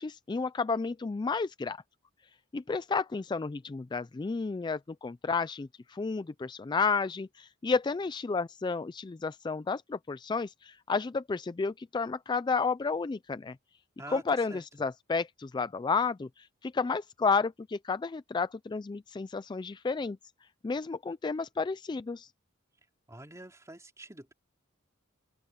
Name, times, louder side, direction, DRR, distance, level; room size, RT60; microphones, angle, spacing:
voice 1, 0.0-1.8 2.5-13.6 14.1-20.2 20.6-22.3, left 4 dB, 20° left, 0.3 m, -31 dB
voice 2, 23.1-24.3, right 1 dB, 15° right, 4.0 m, -46 dB
open air
head